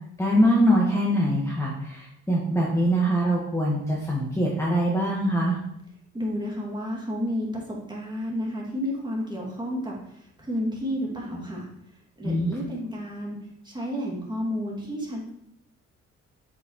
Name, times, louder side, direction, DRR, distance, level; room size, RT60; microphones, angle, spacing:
voice 1, 0.2-5.6 12.2-12.5, equal, 10° left, -4 dB, 1.4 m, -23 dB
voice 2, 6.1-11.7 12.2-13.4 13.6-15.3, equal, 15° right, -2 dB, 2.2 m, -31 dB
8.0 x 5.0 x 3.0 m, 0.74 s
cardioid pair, 90°, 30 cm